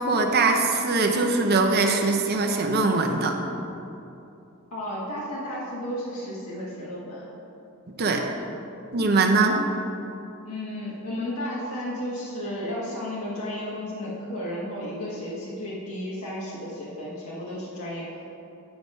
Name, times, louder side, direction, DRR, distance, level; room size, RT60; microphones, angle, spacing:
voice 1, 0.0-3.3 8.0-8.3 8.9-9.6, right 3 dB, 45° right, 3 dB, 0.7 m, -22 dB
voice 2, 4.7-7.3 10.4-18.3, left 1 dB, 85° left, -7 dB, 1.5 m, -33 dB
9.0 x 4.9 x 5.4 m, 2.8 s
head